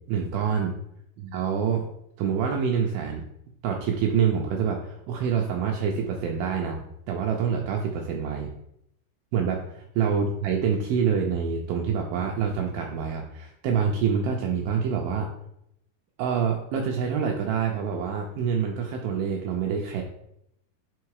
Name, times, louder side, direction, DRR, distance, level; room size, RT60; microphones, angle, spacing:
voice 1, 0.1-0.7 1.2-1.9 2.2-3.2 3.6-8.5 9.3-15.3 16.2-20.0, right 6 dB, 90° right, 1 dB, 2.0 m, -26 dB
5.3 x 4.7 x 4.7 m, 0.77 s
omnidirectional pair, 5.0 m